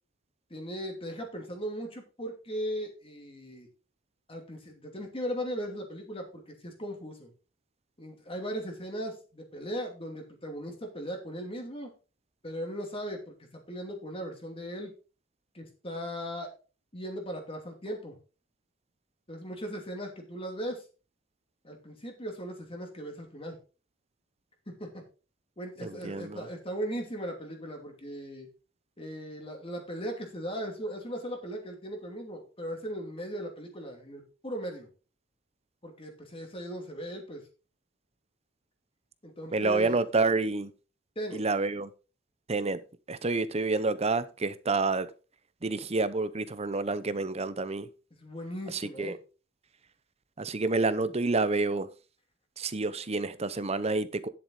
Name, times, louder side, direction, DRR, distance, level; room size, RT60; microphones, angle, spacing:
voice 1, 0.5-3.7 4.3-7.3 8.0-11.9 12.4-14.9 15.5-16.5 16.9-18.2 19.3-20.8 21.6-23.6 24.7-25.0 25.6-28.5 29.0-34.9 35.8-37.5 39.2-40.0 41.2-41.4 48.2-49.2, equal, 25° left, 2.6 m, -38 dB
voice 2, 25.8-26.5 39.5-40.7 41.3-41.9 42.5-42.8 43.1-45.1 45.6-47.9 48.7-49.1 50.4-51.9 52.6-54.3, right 3 dB, 30° right, 0.7 m, -28 dB
10.5 x 7.4 x 3.8 m
head